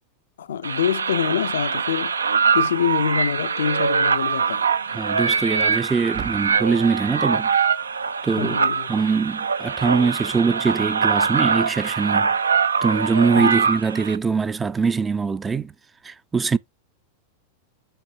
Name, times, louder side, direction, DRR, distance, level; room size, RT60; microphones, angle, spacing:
voice 1, 0.4-2.1 2.5-4.6 8.4-8.9 13.4-13.6, left 8 dB, 65° left, 0.5 m, -25 dB
sound 1, 0.6-14.2, right 5 dB, 75° right, 0.6 m, -23 dB
sound 2, 3.4-3.8 4.1-4.2 6.0-6.9, right 11 dB, 40° right, 0.8 m, -39 dB
voice 2, 4.9-7.5 8.2-8.6 8.9-12.3 12.8-15.7 16.0-16.6, right 5 dB, 15° right, 0.4 m, -22 dB
5.6 x 4.4 x 5.7 m
figure-of-eight pair, 90°, 0 cm